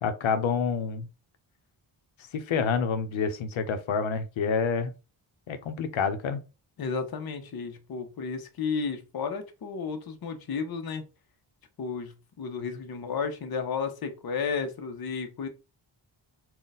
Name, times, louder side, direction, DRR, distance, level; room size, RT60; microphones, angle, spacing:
voice 1, 0.0-1.1 2.3-4.9 5.5-6.4, left 5 dB, 90° left, 0.7 m, -28 dB
voice 2, 6.8-11.0 11.8-15.5, left 5 dB, 50° left, 0.7 m, -33 dB
3.8 x 2.2 x 4.0 m
wide cardioid pair, 145°, 46 cm